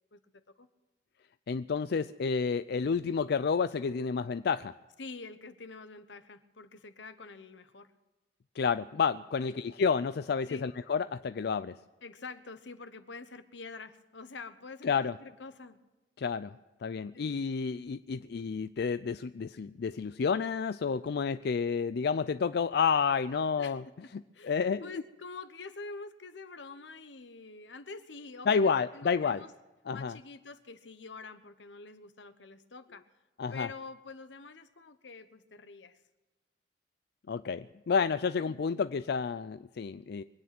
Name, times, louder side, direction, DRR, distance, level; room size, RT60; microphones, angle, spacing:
voice 1, 0.1-0.7 5.0-7.9 9.4-9.6 10.5-10.7 12.0-15.8 17.1-17.3 23.6-29.5 29.9-33.0 33.5-36.0, left 4 dB, 85° left, 11 dB, 1.1 m, -47 dB
voice 2, 1.5-4.7 8.6-11.8 14.8-15.1 16.2-16.5 16.8-23.8 24.4-24.9 28.5-29.4 29.9-30.2 33.4-33.7 37.3-40.2, left 5 dB, 60° left, 12 dB, 0.4 m, -30 dB
24.0 x 9.5 x 6.0 m, 1.1 s
head